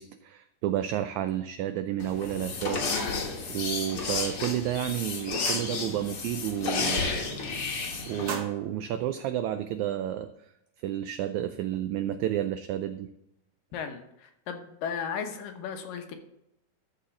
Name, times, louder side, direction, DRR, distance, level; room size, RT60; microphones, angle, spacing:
voice 1, 0.0-3.1 3.5-7.3 8.1-10.3 10.8-13.1, right 11 dB, 85° right, 10 dB, 1.6 m, -31 dB
sound 1, 2.0-8.3, left 4 dB, 50° left, 1.9 m, -32 dB
sound 2, 5.3-6.2 6.5-6.8 7.1-7.7 8.0-9.9, right 5 dB, 60° right, 2.1 m, -42 dB
voice 2, 13.7-16.2, left 7 dB, 80° left, 6 dB, 2.7 m, -35 dB
13.0 x 4.3 x 7.0 m, 0.82 s
omnidirectional pair, 3.9 m